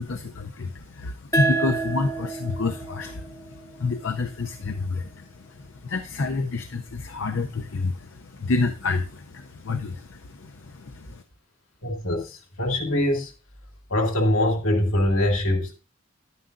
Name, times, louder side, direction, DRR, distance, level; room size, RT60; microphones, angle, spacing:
voice 1, 0.0-11.2, left 3 dB, 70° left, 0.6 m, -29 dB
sound 1, 1.3-4.5, right 3 dB, 15° left, 0.9 m, -29 dB
voice 2, 11.8-13.3 13.9-15.8, left 1 dB, 85° left, 2.4 m, -23 dB
10.5 x 9.5 x 2.6 m
head